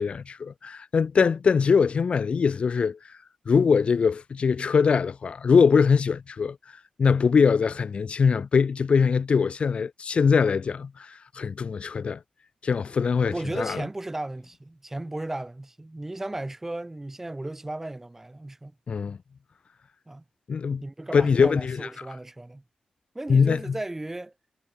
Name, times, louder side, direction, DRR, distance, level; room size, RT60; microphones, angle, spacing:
voice 1, 0.0-3.0 3.5-6.6 7.0-12.2 12.6-13.8 18.9-19.2 20.5-20.8 21.1-21.8 23.3-23.7, left 5 dB, 55° left, 3.5 m, -22 dB
voice 2, 13.3-18.7 20.1-20.2 20.8-22.6 23.2-24.3, right 2 dB, 15° right, 7.0 m, -35 dB
wide cardioid pair, 130°, 2 cm